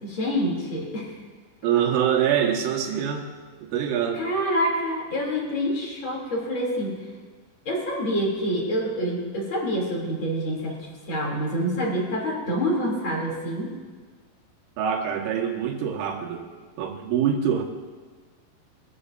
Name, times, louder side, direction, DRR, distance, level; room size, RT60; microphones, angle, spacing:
voice 1, 0.0-1.1 4.1-7.0 7.6-13.7, equal, 30° left, -2 dB, 2.8 m, -27 dB
voice 2, 1.6-3.3 3.6-4.2 14.8-16.5 16.8-17.6, right 8 dB, 80° right, 1 dB, 3.9 m, -24 dB
23.0 x 13.5 x 2.6 m, 1.5 s
omnidirectional pair, 5.7 m